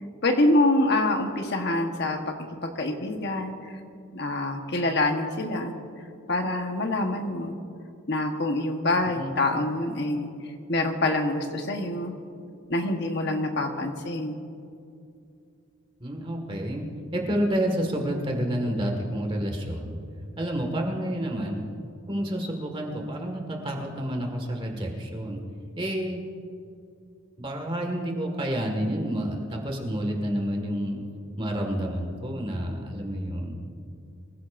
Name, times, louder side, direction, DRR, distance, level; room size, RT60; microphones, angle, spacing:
voice 1, 0.2-2.3 2.6-3.8 4.1-5.8 6.3-7.6 8.1-10.3 10.7-12.2 12.7-14.4, left 2 dB, 50° left, 4 dB, 1.2 m, -26 dB
voice 2, 16.0-16.9 17.1-19.9 20.4-21.6 22.1-25.4 25.8-26.2 27.4-31.0 31.4-33.5, equal, 25° right, 1 dB, 1.7 m, -29 dB
24.5 x 16.0 x 2.6 m, 2.5 s
head